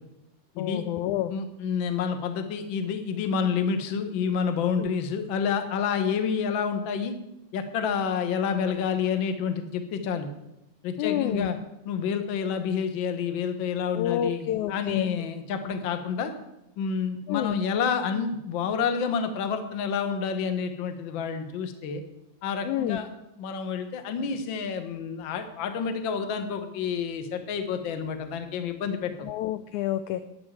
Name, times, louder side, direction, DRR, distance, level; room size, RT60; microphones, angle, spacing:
voice 1, 0.6-1.3 4.8-4.9 11.0-11.5 13.9-15.1 17.3-17.6 22.6-23.0 29.2-30.2, left 12 dB, 85° left, 11 dB, 1.7 m, -28 dB
voice 2, 1.3-7.1 7.5-10.3 10.8-11.6 11.8-16.3 16.8-22.0 22.4-23.1 23.4-29.3, left 6 dB, 60° left, 7 dB, 1.3 m, -29 dB
10.0 x 10.0 x 7.5 m, 0.86 s
omnidirectional pair, 4.0 m